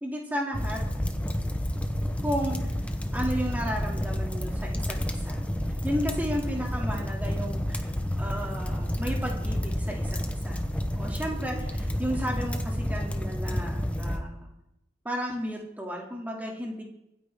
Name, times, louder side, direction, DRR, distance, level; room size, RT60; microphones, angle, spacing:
voice 1, 0.0-0.8 2.2-2.6 3.1-5.4 5.8-7.9 8.2-10.6 10.9-14.5 15.0-16.8, equal, 10° right, -1 dB, 2.5 m, -33 dB
sound 1, 0.5-14.2, equal, 5° left, 0.9 m, -30 dB
24.0 x 9.3 x 3.6 m, 0.85 s
head